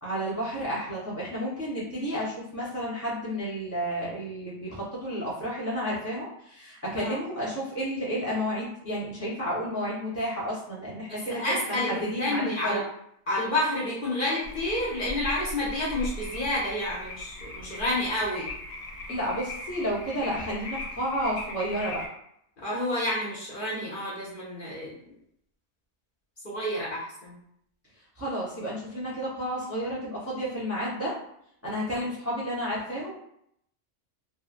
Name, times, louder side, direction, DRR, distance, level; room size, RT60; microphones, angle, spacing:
voice 1, 0.0-12.8 19.1-22.0 28.2-31.1 31.6-33.1, equal, 15° right, -7 dB, 0.6 m, -31 dB
voice 2, 11.1-11.9 12.2-12.8 13.3-18.5 22.6-24.9 26.4-27.4 31.9-32.0, left 1 dB, 50° left, -6 dB, 0.8 m, -29 dB
sound 1, 14.4-22.1, left 1 dB, 85° left, 1.0 m, -39 dB
2.8 x 2.5 x 2.5 m, 0.72 s
omnidirectional pair, 1.3 m